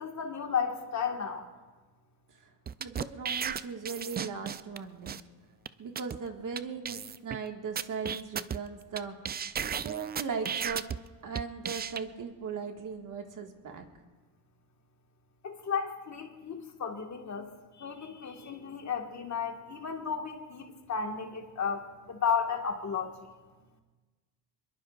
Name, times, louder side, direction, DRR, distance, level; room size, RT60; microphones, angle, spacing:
voice 1, 0.0-1.4 15.4-17.5 17.8-23.1, left 6 dB, 40° left, 3 dB, 1.8 m, -33 dB
sound 1, 2.7-4.8 5.1-5.2 5.7-5.8 6.0-6.2 6.6-6.7 6.8-7.4 7.8-9.0 9.2-11.0 11.3-12.0, right 7 dB, 25° right, 0.4 m, -34 dB
voice 2, 2.8-5.1 5.8-9.1 9.8-10.8 11.2-13.9, right 5 dB, 45° right, 3 dB, 1.9 m, -38 dB
24.0 x 22.0 x 2.5 m, 1.3 s
cardioid pair, 95°, 43 cm